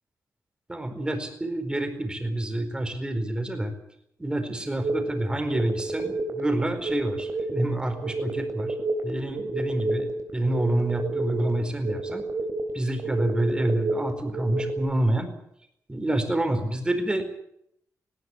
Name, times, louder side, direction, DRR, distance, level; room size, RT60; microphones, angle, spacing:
voice 1, 0.7-3.7 4.2-8.7 9.0-12.2 12.7-15.3 15.9-17.2, right 1 dB, 15° right, 7 dB, 4.4 m, -27 dB
sound 1, 4.8-14.8, right 2 dB, 60° right, 3.8 m, -31 dB
19.0 x 18.0 x 9.5 m, 0.76 s
wide cardioid pair, 125°, 6 cm